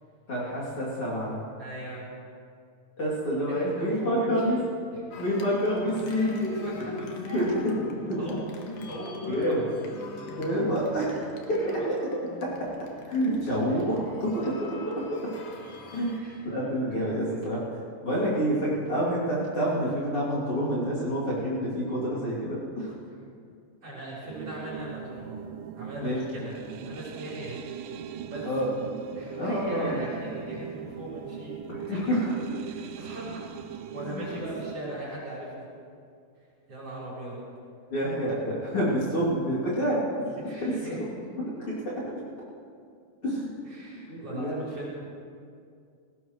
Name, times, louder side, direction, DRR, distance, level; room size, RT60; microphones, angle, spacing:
voice 1, 0.3-1.4 3.0-4.6 5.2-6.5 7.3-7.7 8.1-8.3 8.7-8.8 9.2-9.6 10.4-11.7 12.4-12.7 13.1-15.3 15.9-16.2 16.4-17.6 18.0-22.9 26.0-26.2 28.5-28.7 29.4-30.0 31.7-32.6 34.0-34.2 37.9-40.1 40.6-42.1 43.2-43.5 44.1-44.6, equal, 40° left, -8 dB, 3.6 m, -28 dB
voice 2, 1.6-2.1 3.5-4.6 6.1-7.6 8.2-8.4 8.9-9.6 11.5-11.9 13.7-13.8 16.1-17.5 23.8-25.4 25.7-27.6 28.2-28.5 29.2-31.6 31.9-32.2 32.7-33.5 33.9-35.7 36.7-37.4 40.4-41.0 41.4-41.5 43.6-45.0, right 1 dB, 40° right, -7 dB, 5.3 m, -38 dB
sound 1, 5.1-16.2, left 3 dB, 75° left, 3.0 m, -42 dB
sound 2, 24.3-34.8, right 8 dB, 85° right, 2.2 m, -40 dB
19.0 x 17.5 x 3.2 m, 2.3 s
omnidirectional pair, 4.1 m